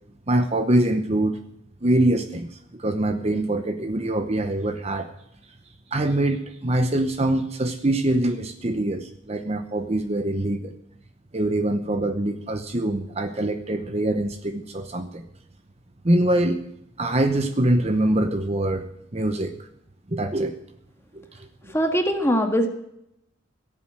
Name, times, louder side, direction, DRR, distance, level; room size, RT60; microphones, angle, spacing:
voice 1, 0.3-1.4 1.8-5.1 5.9-10.7 11.3-15.2 16.0-16.6 17.0-19.7 20.1-20.6 21.1-21.7, right 1 dB, 30° right, 7 dB, 0.9 m, -24 dB
voice 2, 21.7-22.7, equal, 15° left, 4 dB, 1.7 m, -21 dB
17.5 x 7.4 x 8.9 m, 0.77 s
head